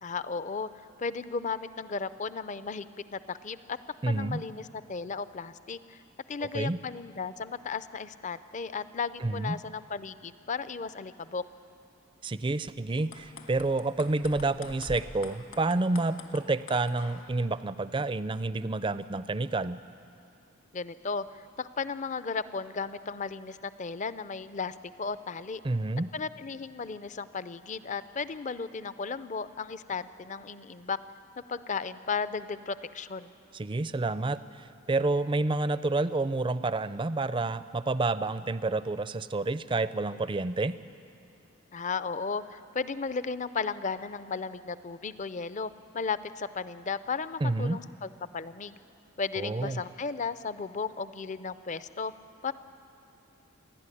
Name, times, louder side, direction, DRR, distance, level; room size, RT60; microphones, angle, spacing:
voice 1, 0.0-0.7 1.0-2.9 3.1-3.8 4.1-6.0 6.3-11.4 20.7-21.3 21.6-25.6 26.1-31.0 31.5-33.3 41.7-48.8 49.2-52.1 52.4-52.5, left 5 dB, 35° left, 14 dB, 0.5 m, -35 dB
voice 2, 4.0-4.4 6.4-6.8 9.2-9.6 12.2-19.8 25.6-26.1 33.5-40.8 47.4-47.8 49.4-49.8, right 2 dB, 25° right, 14 dB, 0.5 m, -29 dB
sound 1, 13.0-17.4, left 3 dB, 65° left, 1.8 m, -46 dB
29.0 x 11.5 x 9.9 m, 2.6 s
head